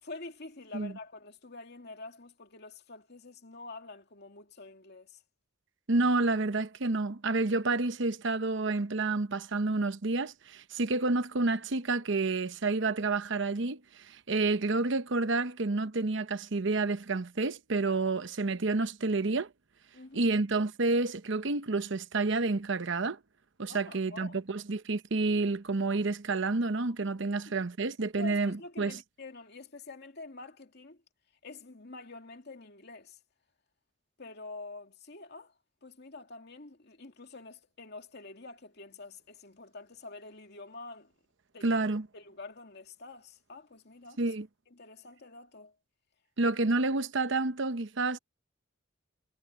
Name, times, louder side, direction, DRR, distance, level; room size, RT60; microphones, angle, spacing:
voice 1, 0.0-5.2 19.9-20.4 23.7-24.4 27.3-27.5 28.2-31.0 31.4-33.2 34.2-35.5 35.8-41.1 41.5-41.8 42.1-44.2 44.7-45.7, left 3 dB, 60° left, 2.5 m, -47 dB
voice 2, 5.9-19.5 20.1-23.2 23.6-29.0 41.6-42.1 44.2-44.5 46.4-48.2, right 3 dB, 65° right, 0.9 m, -29 dB
head